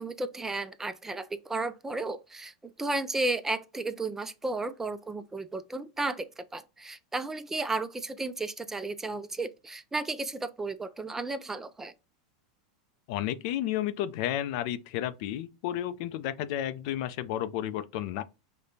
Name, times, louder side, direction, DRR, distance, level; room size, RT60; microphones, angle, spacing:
voice 1, 0.0-11.9, right 2 dB, 10° right, 0.3 m, -33 dB
voice 2, 13.1-18.2, left 12 dB, 60° left, 0.4 m, -32 dB
4.9 x 2.1 x 2.7 m
hypercardioid pair, 120°, 4 cm